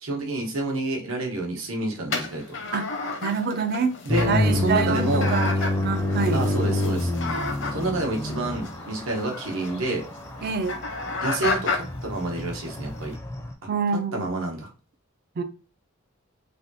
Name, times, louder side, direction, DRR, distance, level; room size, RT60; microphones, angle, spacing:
voice 1, 0.0-2.4 4.0-5.3 6.3-7.1 7.7-10.1 11.2-13.2 13.6-13.7 14.1-14.7, right 2 dB, 90° right, 0.9 m, -29 dB
sound 1, 2.1-13.1, left 3 dB, 65° left, 0.7 m, -33 dB
voice 2, 3.2-4.0 4.3-5.5 5.8-6.4 10.4-10.8 13.7-14.4 15.4-15.5, right 5 dB, 50° right, 0.4 m, -26 dB
sound 2, 4.1-13.5, left 1 dB, 15° left, 0.4 m, -28 dB
3.3 x 2.2 x 2.6 m
head